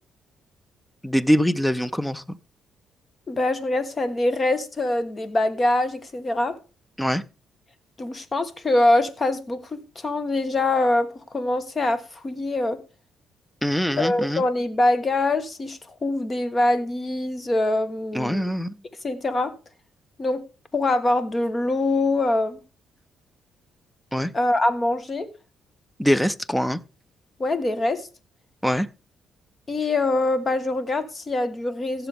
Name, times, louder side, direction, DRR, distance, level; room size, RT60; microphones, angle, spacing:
voice 1, 1.0-2.4 7.0-7.2 13.6-14.4 18.1-18.7 24.1-24.3 26.0-26.8 28.6-28.9, equal, 5° left, 0.5 m, -23 dB
voice 2, 3.3-6.6 8.0-12.8 14.0-18.5 19.0-19.5 20.2-20.4 20.7-22.6 24.3-25.3 27.4-28.1 29.7-32.1, left 2 dB, 30° left, 1.3 m, -24 dB
15.5 x 6.9 x 3.6 m
cardioid pair, 90°, 0 cm